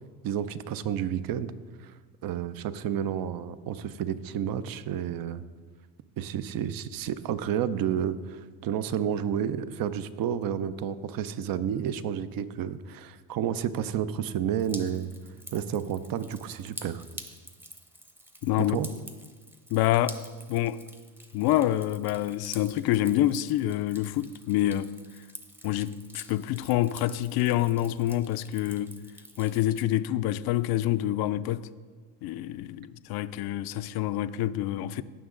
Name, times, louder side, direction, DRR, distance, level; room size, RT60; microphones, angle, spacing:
voice 1, 0.2-1.5 1.8-1.9 2.2-5.4 6.2-15.1 15.5-17.0 18.7-18.9, right 9 dB, 50° right, 0.6 m, -31 dB
Drip, 14.6-29.8, equal, 5° right, 0.8 m, -48 dB
voice 2, 18.4-18.8 19.7-20.2 20.5-20.8 21.3-24.9 25.6-28.9 29.4-31.7 32.2-35.0, left 13 dB, 55° left, 0.5 m, -27 dB
16.0 x 6.2 x 3.8 m
supercardioid pair, 105°, 45 cm